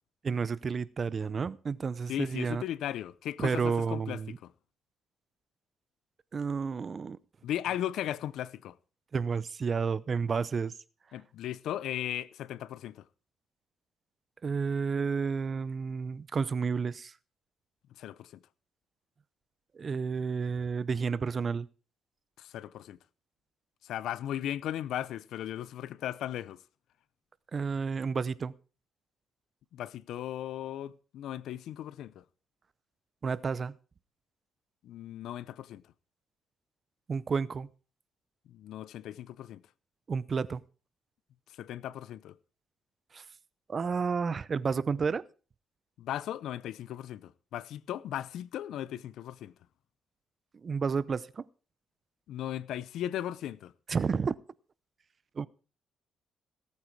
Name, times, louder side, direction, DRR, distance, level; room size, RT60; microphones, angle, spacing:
voice 1, 0.2-2.6 3.4-4.4 6.3-7.2 9.1-10.7 14.4-17.1 19.8-21.7 27.5-28.5 33.2-33.7 37.1-37.7 40.1-40.6 43.1-43.2 43.7-45.2 50.6-51.4 53.9-54.3 55.4-55.5, right 5 dB, 40° right, 0.7 m, -31 dB
voice 2, 2.1-4.5 7.4-8.8 11.1-13.0 18.0-18.3 22.4-23.0 23.8-26.6 29.7-32.2 34.8-35.8 38.5-39.6 41.6-42.4 46.0-49.5 52.3-53.7, left 11 dB, 80° left, 0.6 m, -37 dB
18.0 x 8.7 x 4.6 m
cardioid pair, 90°, 0 cm